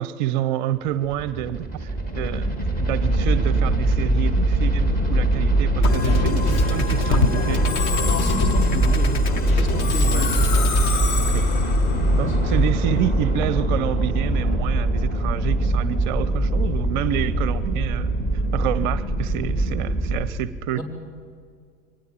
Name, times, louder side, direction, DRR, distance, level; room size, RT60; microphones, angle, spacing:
voice 1, 0.0-7.7 10.0-10.3 11.3-11.5 12.2-20.8, right 12 dB, 35° right, 17 dB, 0.6 m, -28 dB
sound 1, 0.9-20.3, right 1 dB, 20° left, 2.7 m, -22 dB
Musical instrument, 5.8-13.2, left 6 dB, 35° left, 1.1 m, -26 dB
voice 2, 8.1-10.3 11.4-11.5 12.3-12.4 20.7-20.8, left 1 dB, 65° left, 3 dB, 4.5 m, -31 dB
24.0 x 19.0 x 7.5 m, 2.1 s
figure-of-eight pair, 100°, 45 cm